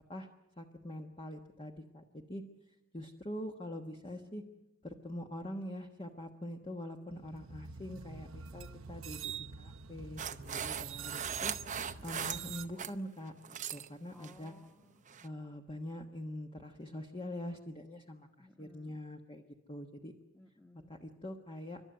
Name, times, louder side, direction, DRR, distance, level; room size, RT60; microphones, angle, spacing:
voice 1, 0.6-2.4 2.9-4.4 4.8-13.3 13.7-14.5 15.2-19.4 19.7-20.1 20.9-21.8, left 1 dB, 25° left, 3 dB, 1.2 m, -44 dB
voice 2, 4.1-4.6 11.8-12.4 14.1-15.0 18.4-19.0 20.3-20.9, left 1 dB, 10° left, 5 dB, 1.6 m, -60 dB
sound 1, 7.1-12.7, right 7 dB, 70° right, 0.9 m, -45 dB
sound 2, 10.2-13.0 13.3-13.9 14.2-14.5 15.1-15.3, right 8 dB, 35° right, 0.7 m, -39 dB
30.0 x 12.5 x 9.4 m, 1.0 s
head